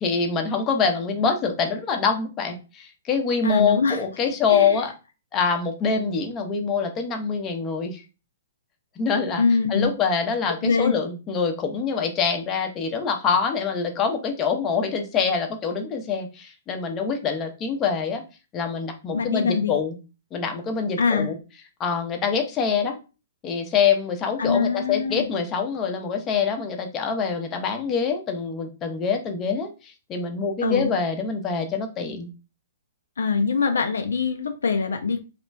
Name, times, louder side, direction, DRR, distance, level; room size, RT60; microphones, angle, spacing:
voice 1, 0.0-4.9 5.3-8.0 9.0-9.4 9.7-18.2 18.5-20.0 20.3-21.4 21.8-23.0 23.4-32.3, left 5 dB, 25° left, 4 dB, 0.6 m, -25 dB
voice 2, 3.4-4.0 4.5-4.8 9.4-9.9 10.6-10.9 19.1-19.7 21.0-21.3 24.4-25.3 30.6-30.9 33.2-35.2, left 5 dB, 70° left, 6 dB, 0.4 m, -23 dB
3.0 x 2.4 x 3.3 m, 0.32 s
figure-of-eight pair, 115°, 0 cm